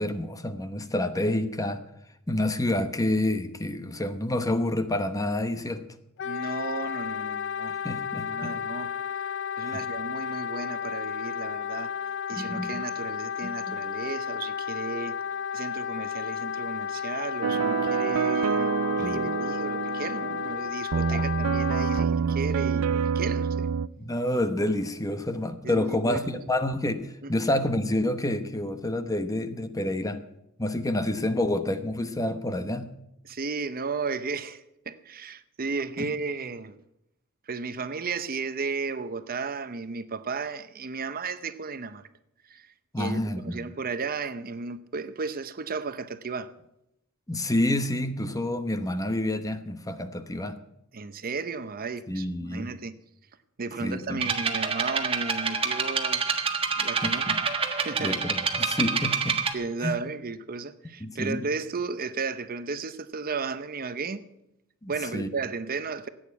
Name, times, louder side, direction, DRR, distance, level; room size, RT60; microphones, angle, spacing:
voice 1, 0.0-1.8 2.3-5.8 7.8-8.5 9.6-9.8 12.3-12.8 13.4-13.8 19.0-19.3 21.1-21.2 24.0-30.2 30.6-32.9 36.0-36.1 42.9-43.6 47.3-50.6 52.1-52.7 53.8-54.2 57.0-57.4 58.0-59.4 59.8-60.0 61.0-61.5 64.8-65.3, left 1 dB, 15° left, 0.9 m, -28 dB
Wind instrument woodwind instrument, 6.2-22.1, left 7 dB, 55° left, 0.4 m, -33 dB
voice 2, 6.2-8.9 9.6-11.9 12.3-15.2 15.5-23.7 25.6-26.4 27.2-27.3 33.2-36.7 37.5-42.0 42.5-46.5 50.9-53.0 53.6-56.3 56.8-57.3 57.8-58.2 59.5-64.2 64.9-66.1, right 4 dB, 45° right, 0.7 m, -34 dB
sound 1, 17.4-23.9, right 6 dB, 80° right, 0.4 m, -27 dB
sound 2, 54.2-59.5, right 5 dB, 25° right, 1.5 m, -27 dB
15.0 x 9.0 x 8.3 m
head